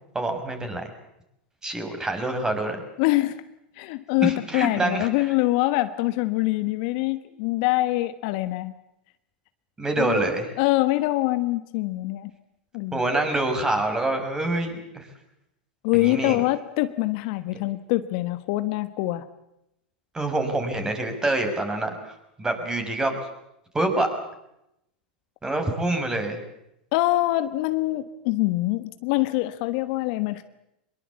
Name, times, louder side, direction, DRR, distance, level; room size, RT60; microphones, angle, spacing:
voice 1, 0.1-0.9 1.6-2.8 4.2-5.1 9.8-10.5 12.9-15.1 15.9-16.4 20.1-22.1 22.4-23.1 23.7-24.1 25.4-26.4, right 2 dB, 15° right, 5 dB, 5.8 m, -26 dB
voice 2, 3.0-3.4 3.8-8.7 10.0-10.2 10.6-12.3 12.7-13.0 15.8-19.3 26.9-30.4, left 18 dB, 55° left, 11 dB, 1.3 m, -24 dB
24.0 x 22.0 x 8.3 m, 0.82 s
hypercardioid pair, 100°, 5 cm